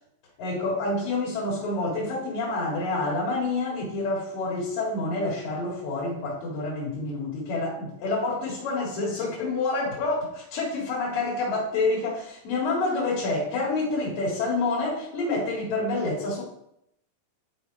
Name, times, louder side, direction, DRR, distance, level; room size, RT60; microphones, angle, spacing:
voice 1, 0.4-16.4, left 3 dB, 75° left, -4 dB, 3.4 m, -28 dB
11.0 x 3.7 x 4.8 m, 0.77 s
omnidirectional pair, 4.0 m